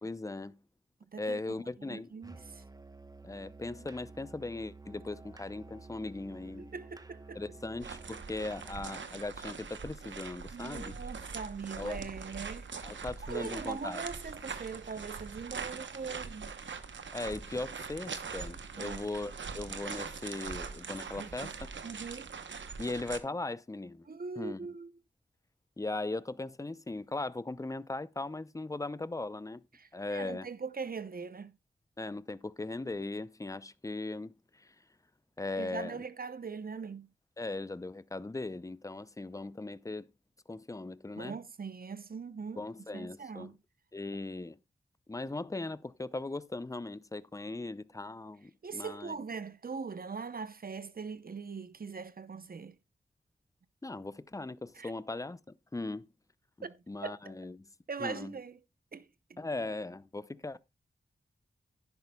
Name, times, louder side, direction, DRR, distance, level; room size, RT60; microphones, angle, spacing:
voice 1, 0.0-0.6 1.2-2.1 3.2-6.7 7.3-10.9 11.7-12.0 12.8-14.0 17.1-21.7 22.8-24.1 24.4-24.6 25.8-29.6 29.9-30.5 32.0-34.7 35.4-36.0 37.4-40.0 40.5-41.4 42.6-43.5 43.9-44.6 45.1-49.1 53.8-56.1 56.9-57.7 58.0-58.3 59.4-60.6, left 2 dB, 15° left, 0.6 m, -39 dB
voice 2, 1.1-1.6 1.9-2.6 6.6-7.4 10.5-16.5 18.8-19.0 21.2-21.5 21.8-22.3 24.0-24.9 29.7-31.5 35.6-37.1 41.2-42.6 42.9-43.5 48.6-52.8 54.7-54.9 56.6-57.3 57.9-58.6 58.9-59.5, right 5 dB, 50° right, 0.8 m, -41 dB
Musical instrument, 2.2-9.0, right 3 dB, 20° right, 1.0 m, -51 dB
sound 1, 7.8-23.2, right 5 dB, 75° right, 1.0 m, -42 dB
10.5 x 10.5 x 2.3 m
cardioid pair, 45°, 19 cm